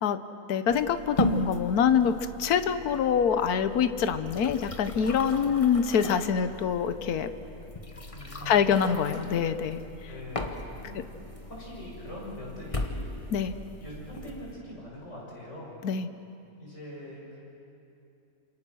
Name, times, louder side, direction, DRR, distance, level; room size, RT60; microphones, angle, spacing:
voice 1, 0.5-7.3 8.5-9.8 13.3-13.5 15.8-16.1, left 7 dB, 75° left, 11 dB, 1.4 m, -25 dB
sound 1, 0.7-14.5, left 1 dB, 25° left, 1.3 m, -37 dB
voice 2, 8.1-9.0 10.1-11.0 11.4-13.1 13.8-15.7 16.6-17.4, left 1 dB, 50° left, -4 dB, 6.9 m, -43 dB
28.0 x 27.0 x 6.3 m, 2.7 s
omnidirectional pair, 1.6 m